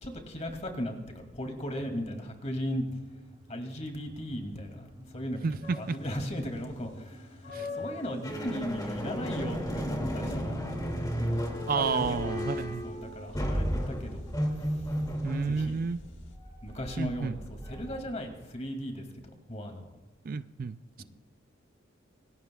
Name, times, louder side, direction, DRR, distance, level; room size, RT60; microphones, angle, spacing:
voice 1, 0.0-2.8 3.5-4.9 5.1-7.2 7.6-10.7 11.2-11.4 11.8-12.4 12.8-14.2 15.5-15.8 16.6-19.0 19.5-19.8 21.0-21.1, equal, 35° left, 4 dB, 2.4 m, -37 dB
sound 1, 1.7-13.6, equal, 25° right, 2.2 m, -51 dB
voice 2, 5.4-6.0 7.5-7.7 11.7-12.9 15.2-16.0 17.0-17.4 20.2-21.0, right 5 dB, 45° right, 13 dB, 0.4 m, -31 dB
sound 2, 5.6-16.3, left 4 dB, 70° left, 1.6 m, -47 dB
sound 3, 8.2-18.3, equal, 20° left, 2.3 m, -34 dB
25.5 x 19.0 x 2.3 m, 1.1 s
head